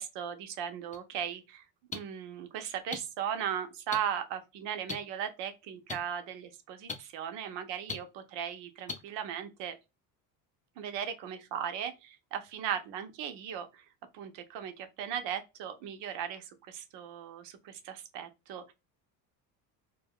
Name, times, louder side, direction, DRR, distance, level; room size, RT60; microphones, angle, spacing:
voice 1, 0.0-1.6 1.9-9.7 10.8-13.8 14.1-18.7, right 9 dB, 70° right, 0.7 m, -37 dB
sound 1, 0.9-1.0 1.9-2.0 2.9-3.0 3.9-4.0 4.9-5.0 5.9-6.0 6.9-7.0 7.9-8.0 8.9-9.0, left 4 dB, 20° left, 0.5 m, -35 dB
2.3 x 2.1 x 3.4 m
supercardioid pair, 80°, 44 cm